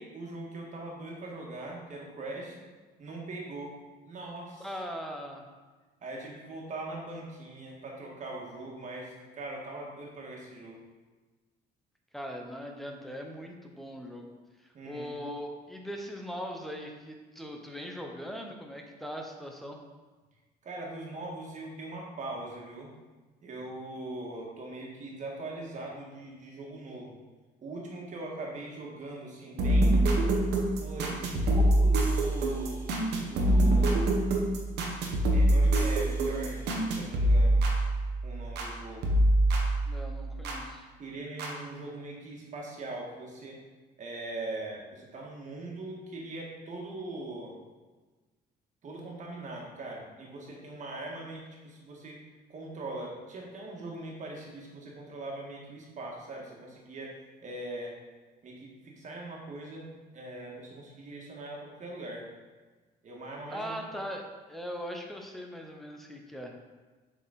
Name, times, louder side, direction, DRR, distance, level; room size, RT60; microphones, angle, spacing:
voice 1, 0.0-2.7 3.0-3.7 4.0-4.7 6.0-10.8 14.7-15.1 20.6-22.9 23.4-27.1 27.6-30.0 30.8-32.8 33.3-34.1 35.3-37.6 38.2-39.1 41.0-43.6 44.0-47.6 48.8-52.2 52.5-57.1 57.4-57.9 58.4-59.9 60.1-62.3 63.0-63.7, right 2 dB, 45° right, -2 dB, 1.8 m, -41 dB
voice 2, 4.6-5.4 12.1-14.3 14.6-19.8 39.9-40.9 63.5-66.6, equal, ahead, 2 dB, 0.9 m, -40 dB
sound 1, 29.6-38.7 39.0-40.6 41.4-41.5, right 1 dB, 80° right, 1.2 m, -25 dB
7.1 x 4.3 x 4.2 m, 1.3 s
cardioid pair, 110°, 17 cm